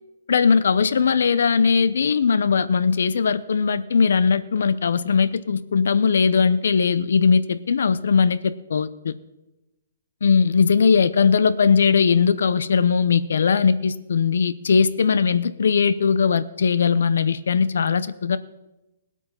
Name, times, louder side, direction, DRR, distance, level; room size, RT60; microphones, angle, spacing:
voice 1, 0.3-9.1 10.2-18.4, left 5 dB, 75° left, 15 dB, 0.7 m, -19 dB
17.5 x 8.3 x 5.6 m, 0.99 s
hypercardioid pair, 160°, 0 cm